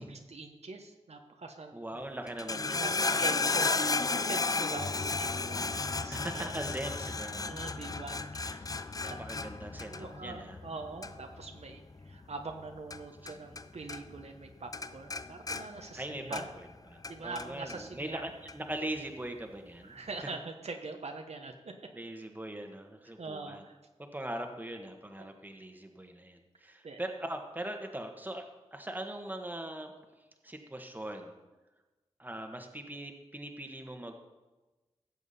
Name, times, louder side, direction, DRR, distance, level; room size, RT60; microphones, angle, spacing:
voice 1, 0.0-2.1 2.8-3.8 4.2-6.5 7.4-8.6 9.1-9.2 9.9-16.5 17.1-18.2 19.8-21.7 23.2-23.8 25.2-25.3 26.8-27.0, right 3 dB, 75° right, 4 dB, 1.0 m, -43 dB
voice 2, 1.7-3.3 3.7-3.8 6.1-7.7 9.0-10.6 15.9-20.0 21.9-23.6 24.0-28.4 28.7-29.9 30.4-31.4 32.2-34.1, right 1 dB, 15° right, 4 dB, 1.3 m, -41 dB
sound 1, 2.3-13.6 13.9-14.5 14.7-16.7 17.0-17.8 18.5-18.6, left 3 dB, 35° left, 0.4 m, -34 dB
15.5 x 7.3 x 4.2 m, 1.2 s
wide cardioid pair, 70°, 11 cm